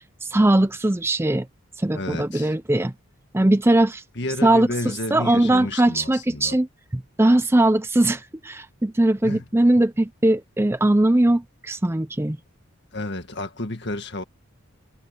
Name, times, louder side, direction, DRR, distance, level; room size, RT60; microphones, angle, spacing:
voice 1, 0.2-1.5 1.8-2.9 3.3-4.0 4.4-4.7 5.1-6.7 6.9-12.4, right 1 dB, 10° right, 0.4 m, -20 dB
voice 2, 1.9-2.5 4.2-6.6 9.2-9.5 12.9-14.2, left 2 dB, 50° left, 1.9 m, -31 dB
head